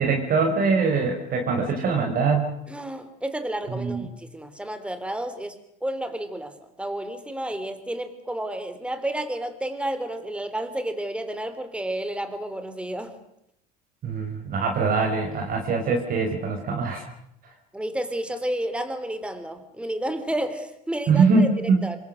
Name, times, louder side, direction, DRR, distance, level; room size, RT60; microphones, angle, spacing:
voice 1, 0.0-2.5 3.7-4.0 14.0-17.0 21.1-21.8, right 4 dB, 45° right, 2 dB, 4.7 m, -23 dB
voice 2, 2.7-6.5 6.8-13.1 17.7-21.5 21.8-22.0, right 1 dB, 5° right, 9 dB, 3.8 m, -31 dB
26.5 x 23.0 x 6.6 m, 0.77 s
supercardioid pair, 95°, 20 cm